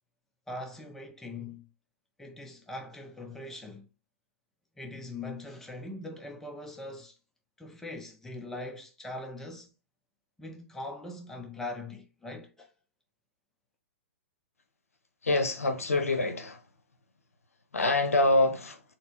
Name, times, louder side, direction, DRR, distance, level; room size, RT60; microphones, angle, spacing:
voice 1, 0.5-1.7 2.2-3.9 4.8-7.1 7.6-9.7 10.4-12.7, left 2 dB, 5° left, 0.4 m, -41 dB
voice 2, 15.2-16.6 17.7-18.8, left 2 dB, 85° left, 0.6 m, -25 dB
4.0 x 2.0 x 2.8 m
figure-of-eight pair, 115°, 8 cm